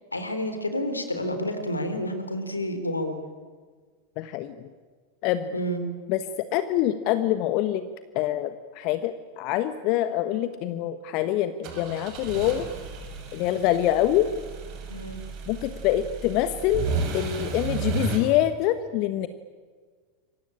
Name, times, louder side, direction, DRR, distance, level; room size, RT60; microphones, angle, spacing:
voice 1, 0.1-3.1 5.5-5.8 14.9-15.2, equal, 85° left, 8 dB, 3.7 m, -29 dB
voice 2, 4.2-4.5 5.2-5.5 6.1-7.9 8.1-12.7 13.3-14.3 15.5-19.3, left 12 dB, 45° left, 11 dB, 1.3 m, -25 dB
sound 1, 11.6-18.2, right 5 dB, 45° right, 6.0 m, -33 dB
28.0 x 24.0 x 8.9 m, 1.5 s
figure-of-eight pair, 85°, 0 cm